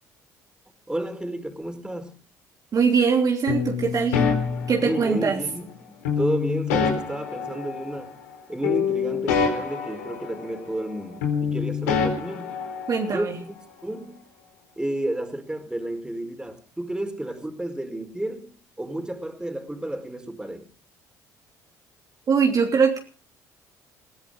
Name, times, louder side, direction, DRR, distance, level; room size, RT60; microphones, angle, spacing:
voice 1, 0.9-2.1 4.8-8.1 8.5-12.6 13.1-13.5 13.8-14.2 14.8-20.7, right 1 dB, 10° right, 4.7 m, -31 dB
voice 2, 2.7-4.2 4.7-5.4 12.9-13.4 22.3-23.0, right 5 dB, 45° right, 3.1 m, -21 dB
sound 1, 3.5-5.5 6.0-8.4 8.6-10.9 11.2-13.3, left 6 dB, 80° left, 4.2 m, -26 dB
20.5 x 16.0 x 3.9 m
hypercardioid pair, 55°, 9 cm